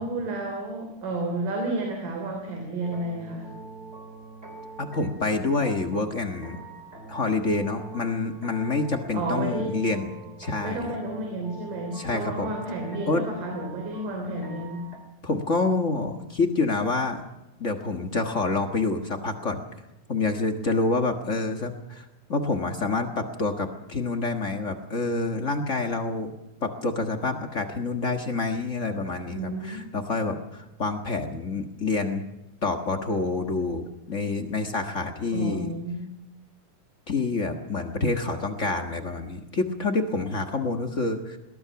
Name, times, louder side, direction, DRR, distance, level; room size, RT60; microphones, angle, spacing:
voice 1, 0.0-3.5 9.1-9.8 10.6-14.9 29.3-29.8 35.3-36.1, right 2 dB, 75° right, 2 dB, 4.8 m, -31 dB
sound 1, 2.8-15.0, right 3 dB, 20° right, 3.4 m, -44 dB
voice 2, 4.8-6.6 7.1-10.1 10.4-10.9 11.9-12.5 13.1-13.3 15.2-17.2 17.6-19.6 20.1-26.3 26.6-32.2 32.6-35.7 37.1-41.4, left 3 dB, 45° left, 5 dB, 1.0 m, -27 dB
22.0 x 18.5 x 7.1 m, 0.92 s
omnidirectional pair, 3.8 m